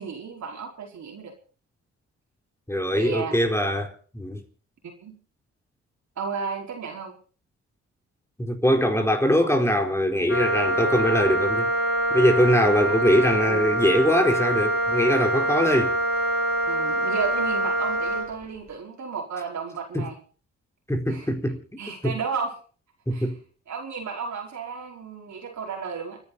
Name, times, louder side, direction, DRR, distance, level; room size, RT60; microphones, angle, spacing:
voice 1, 0.0-1.3 2.9-3.3 5.0-5.1 6.2-7.1 12.9-13.1 13.5-13.8 16.7-20.2 21.1-21.3 21.8-22.5 23.1-23.3 23.7-26.2, right 5 dB, 70° right, 5.2 m, -33 dB
voice 2, 2.7-4.4 8.4-11.7 12.1-15.9 19.9-20.1 20.9-21.6 22.0-22.2 23.1-23.4, equal, 10° left, 4.3 m, -22 dB
Wind instrument woodwind instrument, 10.3-18.3, right 1 dB, 45° left, 5.5 m, -25 dB
29.5 x 10.5 x 4.3 m
supercardioid pair, 55°, 30 cm